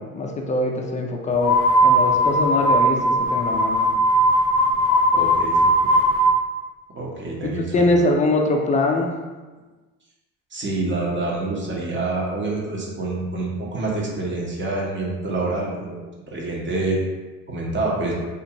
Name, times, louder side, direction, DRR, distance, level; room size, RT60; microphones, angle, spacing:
voice 1, 0.0-3.9 7.6-9.1, left 2 dB, 20° left, 2 dB, 0.4 m, -22 dB
sound 1, 1.4-6.4, right 1 dB, 85° left, 0.5 m, -18 dB
voice 2, 5.1-5.7 7.0-7.9 10.5-15.9 16.3-17.0 17.5-18.1, right 2 dB, 25° right, -3 dB, 0.9 m, -27 dB
2.5 x 2.4 x 2.9 m, 1.3 s
hypercardioid pair, 70°, 42 cm